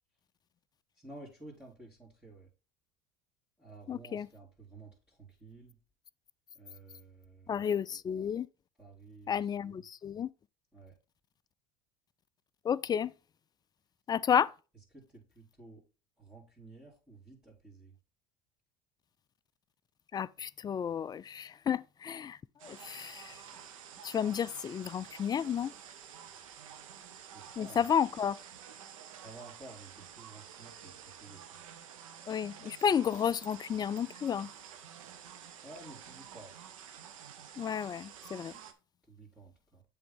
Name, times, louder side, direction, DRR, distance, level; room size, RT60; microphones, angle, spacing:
voice 1, 0.9-2.5 3.6-5.8 6.5-7.7 8.8-9.8 10.7-11.0 14.9-15.8 16.2-17.9 27.2-27.8 29.2-31.4 35.6-36.5 39.1-39.8, right 2 dB, 5° right, 2.6 m, -53 dB
voice 2, 3.9-4.3 7.5-8.5 9.3-10.3 12.6-13.1 14.1-14.5 20.1-23.4 24.0-25.7 27.6-28.4 32.3-34.5 37.6-38.5, left 8 dB, 25° left, 0.3 m, -32 dB
sound 1, 22.6-38.7, right 8 dB, 90° right, 0.9 m, -50 dB
7.6 x 3.6 x 5.4 m
supercardioid pair, 90°, 17 cm